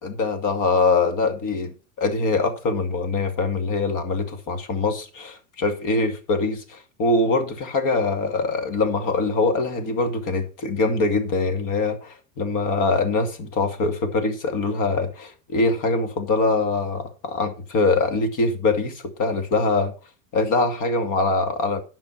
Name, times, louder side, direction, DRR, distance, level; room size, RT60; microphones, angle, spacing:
voice 1, 0.0-19.9 20.3-21.8, left 3 dB, 45° left, 2.4 m, -23 dB
10.5 x 5.9 x 5.8 m
supercardioid pair, 110°, 45 cm